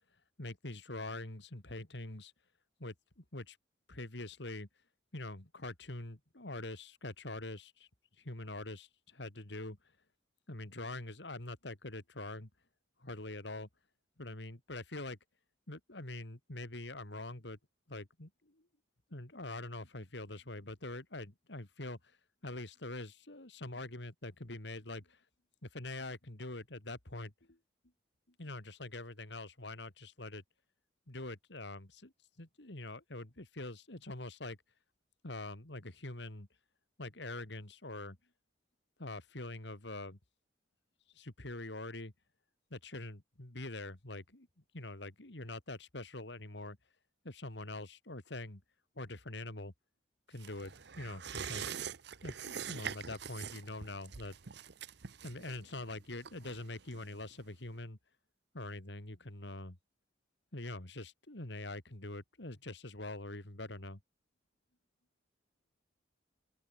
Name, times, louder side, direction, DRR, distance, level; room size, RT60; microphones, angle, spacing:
voice 1, 0.4-2.3 2.8-3.6 3.9-4.7 5.1-7.9 8.2-9.8 10.5-12.5 13.0-13.7 14.2-15.2 15.7-17.6 17.9-18.6 19.1-22.0 22.4-25.2 25.7-27.6 28.4-30.4 31.1-32.1 32.4-34.6 35.2-36.5 37.0-38.2 39.0-40.2 41.1-42.1 42.7-44.5 44.7-46.8 47.2-48.6 49.0-49.7 50.3-51.8 52.2-54.4 55.2-58.0 58.5-59.8 60.5-64.0, left 2 dB, 65° left, 2.6 m, -44 dB
sound 1, 50.4-57.4 57.7-57.8, right 7 dB, 60° right, 0.8 m, -44 dB
open air
head